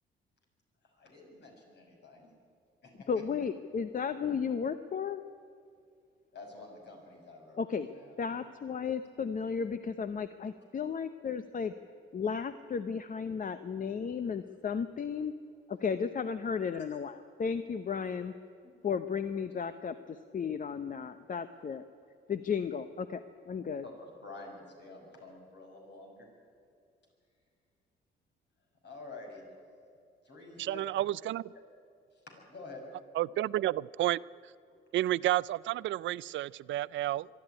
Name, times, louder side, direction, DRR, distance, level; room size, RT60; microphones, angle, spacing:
voice 1, 0.8-2.3 2.8-3.1 6.3-8.1 13.9-14.0 18.6-18.7 23.8-26.3 28.8-29.4 30.2-30.9 31.5-31.6 32.1-32.8, left 3 dB, 60° left, 1 dB, 6.3 m, -49 dB
voice 2, 3.1-5.2 7.6-7.9 8.2-11.7 12.1-15.3 15.7-18.3 18.8-21.8 22.3-23.8, left 6 dB, 45° left, 10 dB, 0.8 m, -34 dB
voice 3, 30.6-31.5 33.2-34.2 34.9-37.3, right 14 dB, 70° right, 20 dB, 0.4 m, -31 dB
23.5 x 12.0 x 10.0 m, 2.4 s
cardioid pair, 90°, 20 cm